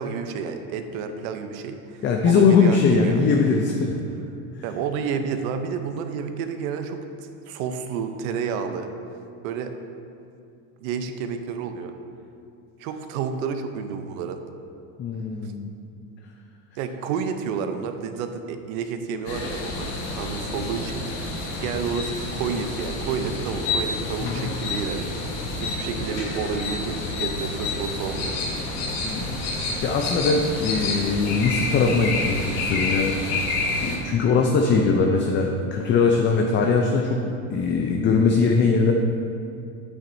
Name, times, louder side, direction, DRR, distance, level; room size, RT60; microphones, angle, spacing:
voice 1, 0.0-3.3 4.6-7.0 7.5-8.9 9.4-9.7 10.8-11.9 12.8-14.4 16.8-21.1 21.6-25.2 25.6-28.4, right 6 dB, 80° right, 7 dB, 0.8 m, -30 dB
voice 2, 2.0-4.0 15.0-15.7 24.2-24.5 29.0-33.5 33.8-37.2 37.5-38.9, left 4 dB, 30° left, 2 dB, 0.4 m, -21 dB
sound 1, 19.3-34.0, left 3 dB, 75° left, 1.4 m, -29 dB
8.6 x 7.2 x 2.6 m, 2.6 s
supercardioid pair, 125°, 42 cm